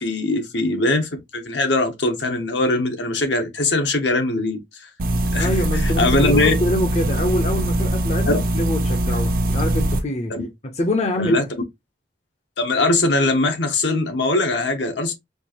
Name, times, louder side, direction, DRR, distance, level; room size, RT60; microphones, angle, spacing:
voice 1, 0.0-4.9 5.3-5.5 5.8-6.5 8.3-8.4 10.3-10.5 11.2-11.4 12.6-15.1, left 2 dB, 75° left, 1.0 m, -21 dB
sound 1, 5.0-10.0, right 1 dB, 50° right, 0.5 m, -22 dB
voice 2, 5.3-10.4 10.8-11.4, left 1 dB, 35° left, 0.6 m, -25 dB
4.4 x 2.5 x 2.9 m
head